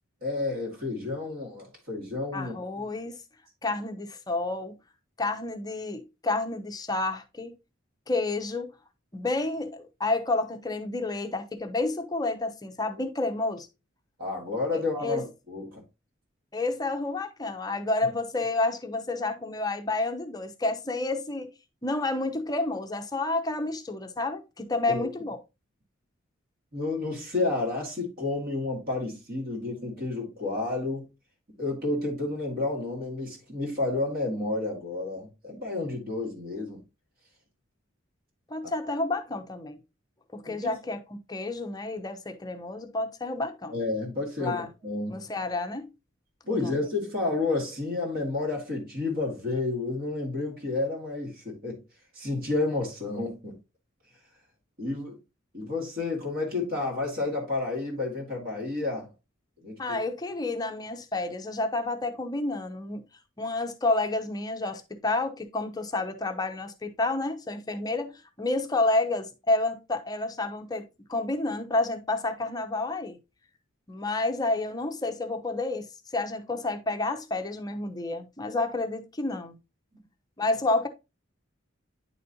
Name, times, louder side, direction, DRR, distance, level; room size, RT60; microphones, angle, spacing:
voice 1, 0.2-2.5 14.2-15.8 24.9-25.1 26.7-31.1 31.6-36.8 40.5-40.7 43.7-45.2 46.5-51.8 52.1-53.5 54.8-55.2 55.5-59.1 59.6-60.0, left 3 dB, 45° right, 2.1 m, -30 dB
voice 2, 2.3-3.2 3.6-4.7 5.2-7.5 8.1-8.7 9.1-13.7 14.7-15.2 16.5-21.5 21.8-25.4 38.5-39.8 40.3-41.0 41.3-43.8 44.4-44.7 45.1-45.9 46.5-46.9 59.8-63.0 63.4-68.1 68.4-73.2 73.9-75.9 76.1-79.6 80.4-80.9, left 2 dB, 20° left, 0.7 m, -30 dB
9.5 x 4.1 x 2.8 m
head